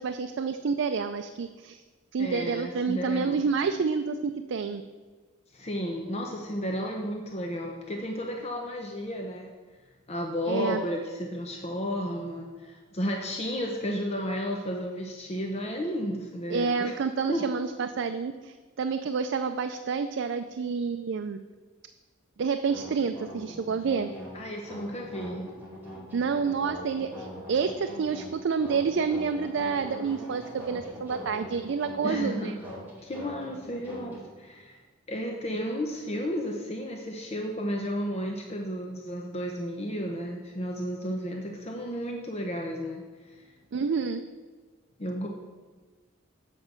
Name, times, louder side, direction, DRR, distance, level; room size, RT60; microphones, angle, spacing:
voice 1, 0.0-1.8 2.1-4.8 10.5-10.8 16.5-21.4 22.4-24.1 26.1-32.5 43.7-44.2, right 5 dB, 65° right, 8 dB, 0.4 m, -29 dB
voice 2, 2.2-3.4 5.5-9.5 10.1-16.9 17.3-17.4 24.3-25.5 32.0-32.5 33.0-34.8 35.1-43.0 45.0-45.3, equal, 35° left, 1 dB, 0.8 m, -33 dB
sound 1, 22.7-34.2, equal, 10° right, 2.2 m, -42 dB
8.2 x 5.4 x 6.5 m, 1.4 s
head